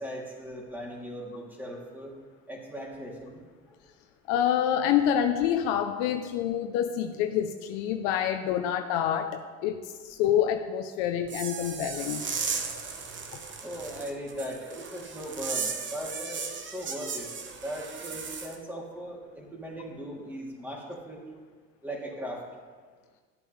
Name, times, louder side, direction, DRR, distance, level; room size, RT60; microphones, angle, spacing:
voice 1, 0.0-2.1 2.5-3.4 3.7-3.9 13.6-17.3 17.6-21.2 21.8-22.4, equal, 5° right, -4 dB, 2.8 m, -38 dB
voice 2, 4.3-12.2, left 9 dB, 80° left, 5 dB, 0.7 m, -27 dB
sound 1, 11.2-18.6, right 5 dB, 40° right, 1.1 m, -36 dB
13.0 x 7.9 x 3.2 m, 1.5 s
supercardioid pair, 90°, 31 cm